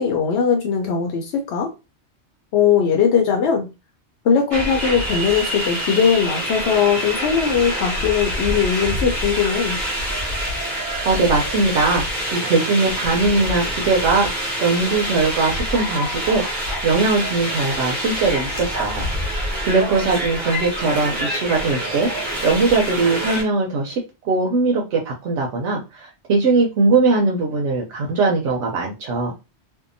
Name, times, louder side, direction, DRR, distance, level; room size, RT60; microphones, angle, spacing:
voice 1, 0.0-1.7 2.5-3.7 4.2-9.8, left 7 dB, 70° left, 0.8 m, -19 dB
sound 1, 4.5-23.4, equal, 45° right, 1.0 m, -26 dB
voice 2, 10.8-16.4 16.8-22.1 22.4-29.3, right 3 dB, 90° right, 0.9 m, -20 dB
2.7 x 2.1 x 2.5 m
omnidirectional pair, 1.2 m